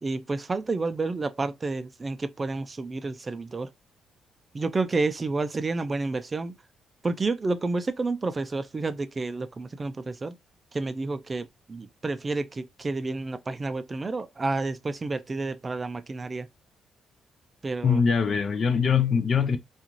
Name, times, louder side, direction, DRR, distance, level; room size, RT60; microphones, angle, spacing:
voice 1, 0.0-3.7 4.5-6.5 7.0-10.4 10.7-16.5 17.6-18.0, right 3 dB, 30° right, 0.3 m, -30 dB
voice 2, 17.8-19.6, left 6 dB, 45° left, 0.5 m, -22 dB
2.4 x 2.4 x 2.9 m
cardioid pair, 90°, 0 cm